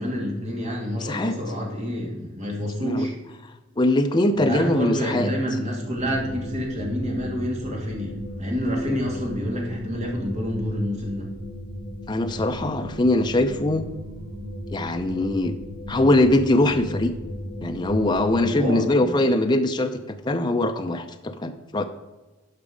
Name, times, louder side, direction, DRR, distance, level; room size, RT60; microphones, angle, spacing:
voice 1, 0.0-3.1 4.3-11.3 18.4-19.3, equal, 30° right, -1 dB, 2.2 m, -28 dB
voice 2, 1.0-1.4 2.8-3.1 3.8-5.3 12.1-13.9 14.7-15.5 15.9-17.1 17.6-21.8, left 1 dB, 20° left, 6 dB, 0.5 m, -22 dB
sound 1, 5.9-18.4, equal, 50° left, 2.7 m, -36 dB
12.0 x 5.0 x 5.0 m, 1.2 s
head